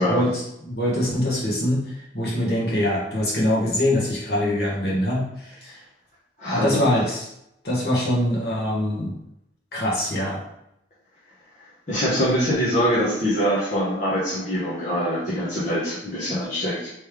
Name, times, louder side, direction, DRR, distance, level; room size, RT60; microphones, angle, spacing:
voice 1, 0.0-5.8 6.4-7.3 7.6-9.1 9.7-10.4, left 1 dB, 65° left, -5 dB, 1.3 m, -24 dB
voice 2, 6.4-6.9 11.9-16.9, equal, 45° left, -9 dB, 1.0 m, -24 dB
3.2 x 3.2 x 3.3 m, 0.80 s
head